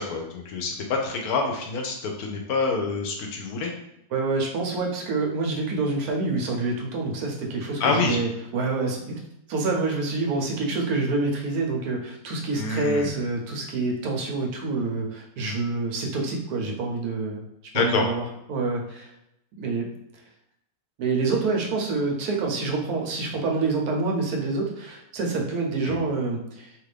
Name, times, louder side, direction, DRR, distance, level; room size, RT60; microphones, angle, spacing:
voice 1, 0.0-3.7 7.8-8.2 12.5-13.1 17.7-18.0 25.8-26.0, left 4 dB, 75° left, 2 dB, 1.0 m, -26 dB
voice 2, 4.1-9.1 9.5-17.5 17.7-19.1 19.6-19.9 21.0-26.7, right 3 dB, 75° right, 0 dB, 1.1 m, -27 dB
2.9 x 2.5 x 3.2 m, 0.82 s
omnidirectional pair, 1.7 m